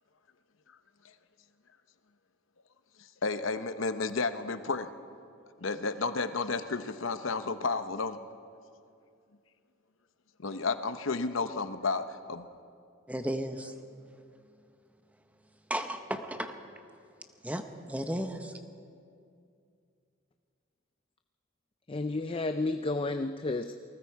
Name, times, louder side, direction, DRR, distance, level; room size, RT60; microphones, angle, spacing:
voice 1, 3.2-4.9 5.6-8.2 10.4-12.5, left 4 dB, 70° left, 10 dB, 0.8 m, -32 dB
voice 2, 13.1-13.8 15.7-16.6 17.4-18.6, right 1 dB, 5° right, 7 dB, 0.9 m, -34 dB
voice 3, 21.9-23.7, left 2 dB, 25° left, 8 dB, 0.4 m, -31 dB
28.0 x 20.0 x 4.7 m, 2.4 s
head